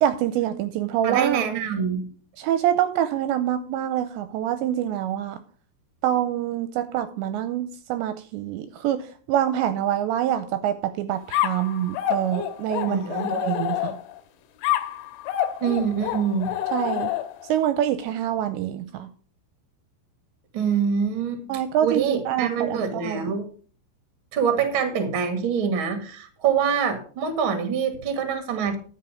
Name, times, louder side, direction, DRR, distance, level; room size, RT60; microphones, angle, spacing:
voice 1, 0.0-1.5 2.4-5.4 6.0-14.0 16.7-17.1 17.5-19.1 21.5-23.3, right 11 dB, 80° right, 10 dB, 2.7 m, -26 dB
voice 2, 1.0-2.0 12.8-13.5 15.6-16.5 20.5-23.5 24.3-28.7, right 7 dB, 55° right, 7 dB, 1.5 m, -25 dB
sound 1, 11.3-14.2 14.6-17.5, left 12 dB, 90° left, 3.4 m, -27 dB
11.0 x 7.3 x 5.0 m, 0.42 s
omnidirectional pair, 5.5 m